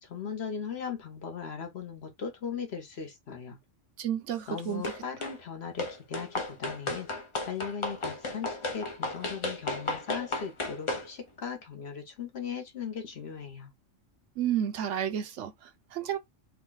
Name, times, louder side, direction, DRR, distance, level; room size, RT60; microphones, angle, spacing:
voice 1, 0.0-3.6 4.5-7.1 7.4-13.7, left 6 dB, 60° left, 1.1 m, -38 dB
voice 2, 4.0-4.9 14.4-16.2, right 10 dB, 75° right, 0.9 m, -31 dB
sound 1, 4.8-5.4 5.8-11.1, left 2 dB, 40° left, 0.5 m, -34 dB
3.3 x 2.3 x 3.8 m
omnidirectional pair, 1.3 m